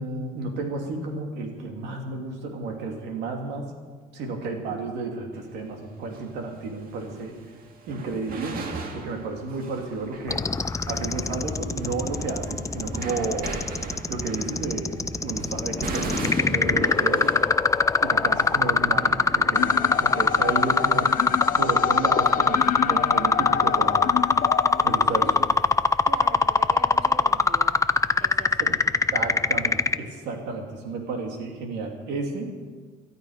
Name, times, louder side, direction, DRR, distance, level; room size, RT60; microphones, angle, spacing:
voice 1, 0.0-3.7 4.1-7.4 7.9-8.6 8.9-13.7 14.1-14.9 15.2-17.3 18.0-21.2 21.6-24.0 24.8-25.3 28.6-28.8 29.1-32.5, right 3 dB, 85° right, 2 dB, 3.0 m, -32 dB
sound 1, 5.4-5.5 6.0-21.3 21.6-23.6, right 4 dB, 60° right, 2.1 m, -39 dB
sound 2, 10.3-29.9, left 4 dB, 20° left, 0.6 m, -21 dB
sound 3, 19.5-25.5, left 9 dB, 55° left, 0.8 m, -29 dB
voice 2, 26.1-27.9 28.2-28.8, right 2 dB, 40° right, 2 dB, 3.0 m, -40 dB
19.0 x 13.0 x 5.1 m, 1.5 s
cardioid pair, 110°, 17 cm